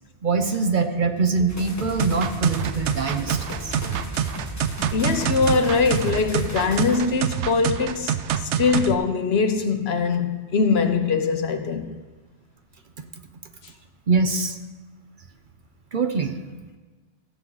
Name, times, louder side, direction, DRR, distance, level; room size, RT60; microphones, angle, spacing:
voice 1, 0.2-3.7 13.0-13.1 14.1-14.6 15.9-16.3, right 4 dB, 50° right, 0.8 m, -23 dB
sound 1, 1.5-7.1, left 1 dB, 15° left, 1.0 m, -35 dB
sound 2, 2.0-8.9, right 9 dB, 80° right, 0.9 m, -26 dB
voice 2, 4.9-11.9, left 4 dB, 65° left, 1.1 m, -22 dB
15.5 x 7.3 x 3.9 m
omnidirectional pair, 1.2 m